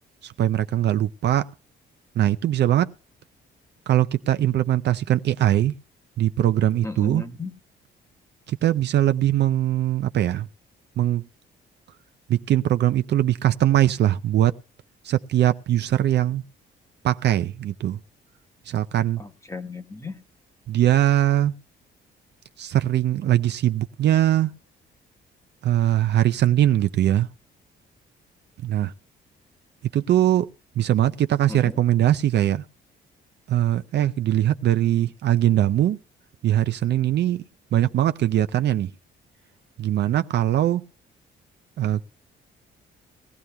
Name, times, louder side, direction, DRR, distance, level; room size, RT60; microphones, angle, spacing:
voice 1, 0.2-1.5 2.2-2.9 3.9-5.7 6.2-7.2 8.5-10.5 11.0-11.2 12.3-14.5 15.0-16.4 17.0-18.0 18.7-19.2 20.7-21.5 22.6-24.5 25.6-27.3 28.6-28.9 29.9-30.5 30.8-32.6 33.5-36.0 36.4-37.4 37.7-38.9 39.8-40.9 41.8-42.1, right 12 dB, 60° right, 0.5 m, -21 dB
voice 2, 6.8-7.5 19.2-20.2 31.5-31.8, left 3 dB, 15° left, 1.1 m, -35 dB
19.5 x 14.5 x 2.2 m
cardioid pair, 90°, 20 cm